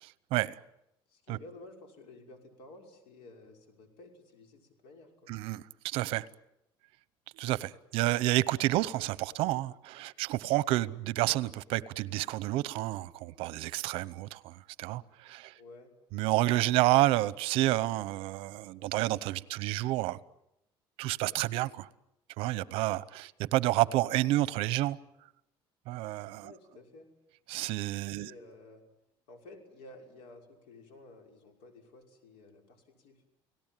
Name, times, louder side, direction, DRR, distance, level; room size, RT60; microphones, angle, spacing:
voice 1, 1.1-5.3 15.5-15.9 26.4-27.1 28.1-28.8 29.3-33.2, left 2 dB, 75° left, 5.8 m, -53 dB
voice 2, 5.3-6.2 7.3-15.5 16.1-20.2 21.0-21.9 22.4-25.0 25.9-26.5 27.5-28.3, right 17 dB, 75° right, 0.9 m, -29 dB
30.0 x 18.0 x 9.1 m
cardioid pair, 160°, 10 cm